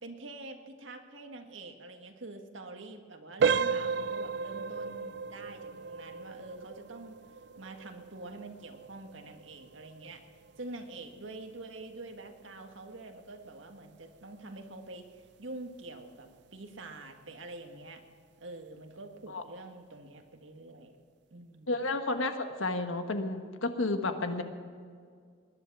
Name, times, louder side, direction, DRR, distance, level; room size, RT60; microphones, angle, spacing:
voice 1, 0.0-7.2 7.6-10.2 10.6-18.0 18.4-20.9 21.3-21.7, right 2 dB, 75° right, 5 dB, 1.6 m, -46 dB
sound 1, 3.4-14.1 14.4-14.7 15.2-15.3 15.8-16.0, right 5 dB, 55° right, 0.3 m, -35 dB
voice 2, 21.7-24.4, left 2 dB, 80° left, 7 dB, 1.4 m, -31 dB
20.0 x 11.0 x 6.1 m, 2.1 s
head